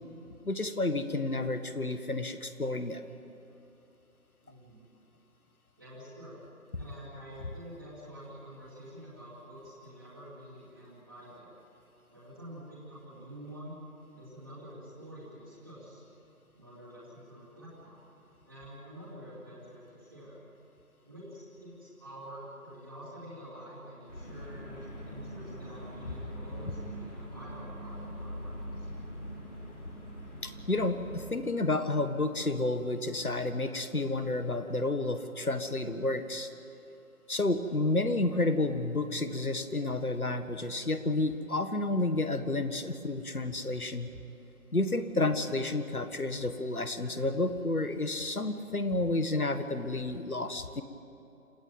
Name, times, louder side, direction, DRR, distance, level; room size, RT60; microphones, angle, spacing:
voice 1, 0.4-3.0 30.4-36.5 37.3-44.1 44.7-50.8, left 2 dB, 70° left, 10 dB, 1.8 m, -30 dB
voice 2, 4.4-4.8 5.8-6.4 6.7-11.5 12.1-13.7 14.1-16.0 16.5-18.0 18.4-20.4 21.0-28.9, equal, 15° right, -12 dB, 2.8 m, -48 dB
sound 1, 24.1-31.3, equal, 50° left, 5.8 m, -43 dB
27.0 x 14.5 x 9.3 m, 2.8 s
figure-of-eight pair, 170°, 45 cm